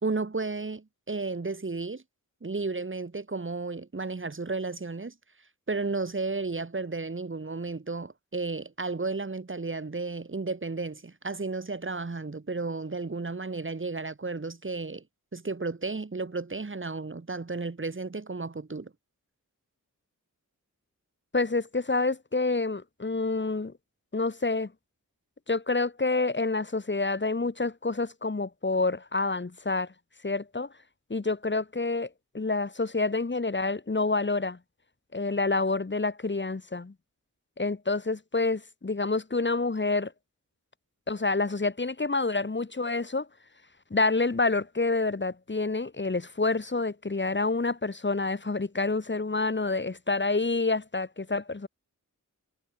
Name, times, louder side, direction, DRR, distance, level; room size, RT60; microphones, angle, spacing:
voice 1, 0.0-2.0 2.4-5.1 5.7-15.0 15.3-18.9, right 3 dB, 35° right, 4.0 m, -33 dB
voice 2, 21.3-23.7 24.1-24.7 25.5-29.9 30.2-30.7 31.1-34.6 35.1-36.9 37.6-40.1 41.1-43.3 43.9-51.7, left 3 dB, 35° left, 2.9 m, -28 dB
wide cardioid pair, 100°, 33 cm